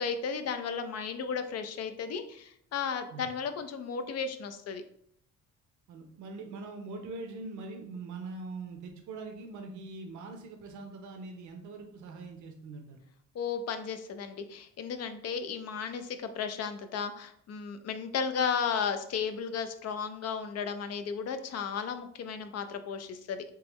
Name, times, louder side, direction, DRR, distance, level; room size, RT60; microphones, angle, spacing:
voice 1, 0.0-4.8 13.3-23.4, left 6 dB, 55° left, 9 dB, 0.5 m, -34 dB
voice 2, 5.9-13.0, right 3 dB, 70° right, 3 dB, 0.7 m, -42 dB
3.6 x 3.1 x 3.0 m, 0.68 s
cardioid pair, 90°, 30 cm